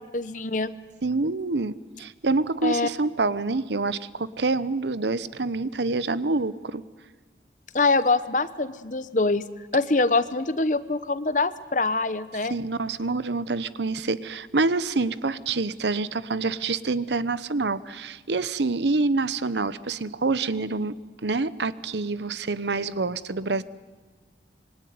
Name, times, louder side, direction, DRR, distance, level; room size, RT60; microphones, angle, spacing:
voice 1, 0.1-0.7 2.6-2.9 7.7-9.5 9.7-12.5, left 3 dB, 45° left, 14 dB, 0.9 m, -24 dB
voice 2, 1.0-6.8 12.5-21.0 21.2-23.6, right 3 dB, 80° right, 16 dB, 0.9 m, -26 dB
26.0 x 23.0 x 9.5 m, 1.3 s
head